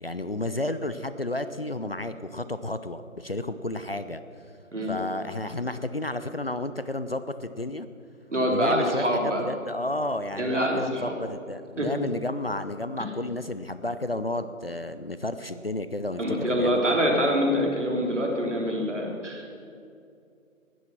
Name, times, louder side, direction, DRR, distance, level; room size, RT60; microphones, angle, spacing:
voice 1, 0.0-4.2 4.9-7.9 8.5-17.0, left 2 dB, 45° left, 11 dB, 0.6 m, -32 dB
voice 2, 8.3-9.4 10.4-11.1 11.8-11.9 16.2-19.5, equal, 60° right, 0 dB, 3.4 m, -25 dB
16.0 x 11.0 x 5.9 m, 2.4 s
figure-of-eight pair, 155°, 42 cm